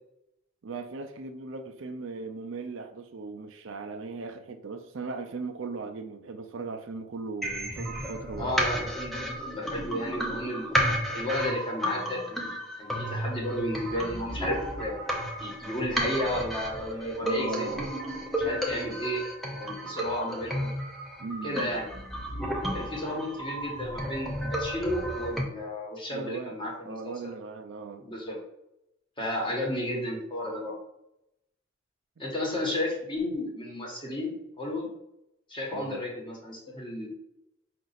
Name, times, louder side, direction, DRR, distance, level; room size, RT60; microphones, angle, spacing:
voice 1, 0.6-8.5 17.2-17.9 21.2-21.7 26.1-26.6 26.8-28.1 35.7-36.0, right 3 dB, 70° right, 0.5 m, -38 dB
sound 1, 7.4-25.4, equal, ahead, 0.5 m, -33 dB
voice 2, 8.4-10.7 11.1-15.0 15.4-17.7 18.4-19.2 19.6-20.7 21.4-21.9 22.7-27.3 28.0-28.4 29.2-30.7 32.2-34.9 35.5-37.1, left 1 dB, 25° left, 1.1 m, -33 dB
5.2 x 2.5 x 4.0 m
head